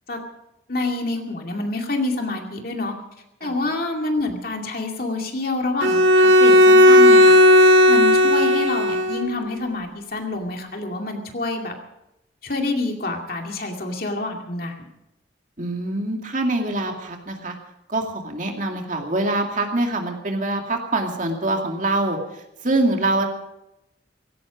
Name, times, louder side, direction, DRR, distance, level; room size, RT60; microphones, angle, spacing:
voice 1, 0.7-2.9 3.4-7.3 7.6-11.7 12.4-14.7, left 2 dB, 50° left, 2 dB, 2.4 m, -27 dB
Bowed string instrument, 5.8-9.3, left 1 dB, 90° right, 1.8 m, -13 dB
voice 2, 15.6-17.5 17.9-22.2 22.6-23.3, right 2 dB, 45° right, 3 dB, 2.3 m, -24 dB
17.0 x 16.5 x 5.1 m, 0.87 s
head